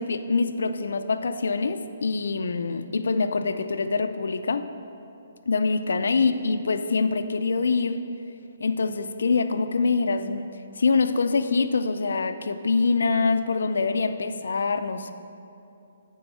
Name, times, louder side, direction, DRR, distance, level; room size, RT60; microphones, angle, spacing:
voice 1, 0.0-4.7 5.5-8.1 8.6-15.1, left 4 dB, 75° left, 9 dB, 0.5 m, -25 dB
9.1 x 4.7 x 6.3 m, 2.8 s
hypercardioid pair, 150°, 0 cm